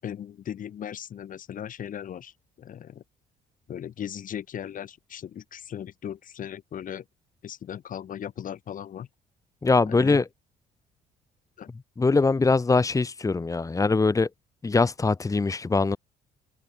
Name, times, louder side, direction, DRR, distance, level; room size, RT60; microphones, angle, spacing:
voice 1, 0.0-3.0 3.7-7.0 7.4-9.1 9.9-10.2 11.6-11.7, left 9 dB, 50° left, 7.2 m, -37 dB
voice 2, 9.6-10.2 12.0-14.3 14.6-16.0, left 3 dB, 20° left, 2.1 m, -22 dB
cardioid pair, 110°, 17 cm